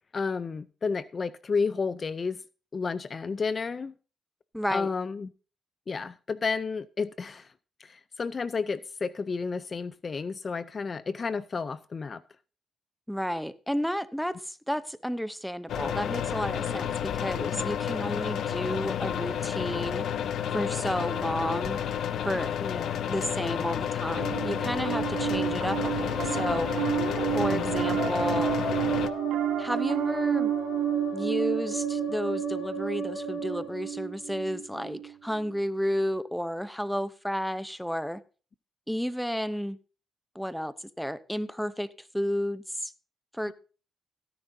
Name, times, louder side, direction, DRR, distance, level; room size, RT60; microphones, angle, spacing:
voice 1, 0.1-2.4 2.7-3.9 4.7-5.3 5.9-7.5 7.8-12.2 22.6-23.0 27.5-27.7 43.5-43.6, left 5 dB, 35° left, 0.5 m, -31 dB
voice 2, 4.5-4.9 13.1-20.1 20.5-21.8 22.2-22.5 23.0-26.7 27.3-28.6 29.6-30.5 31.1-38.2 38.9-39.8 40.3-42.9 43.3-43.5, equal, ahead, 0.7 m, -32 dB
sound 1, 15.7-29.1, left 9 dB, 70° left, 0.7 m, -31 dB
Piano, 24.0-35.5, right 12 dB, 80° right, 0.5 m, -31 dB
Musical instrument, 25.7-34.5, left 3 dB, 90° left, 2.0 m, -38 dB
17.0 x 9.9 x 2.7 m
cardioid pair, 90°, 0 cm